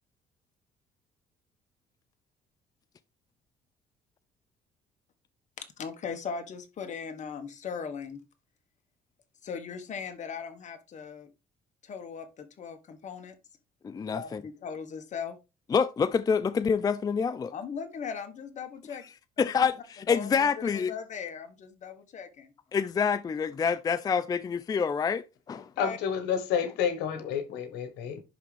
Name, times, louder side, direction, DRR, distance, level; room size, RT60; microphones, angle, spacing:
voice 1, 5.6-8.2 9.4-11.3 11.8-13.3 14.1-15.4 17.5-19.0 19.4-19.5 20.1-20.5 20.7-22.5 25.5-26.0, left 6 dB, 45° left, 1.4 m, -39 dB
voice 2, 13.8-14.4 15.7-17.5 19.4-20.9 22.7-25.7, left 6 dB, 20° left, 0.4 m, -27 dB
voice 3, 25.8-28.2, left 7 dB, 90° left, 1.4 m, -30 dB
10.5 x 3.6 x 3.4 m
cardioid pair, 110°, 17 cm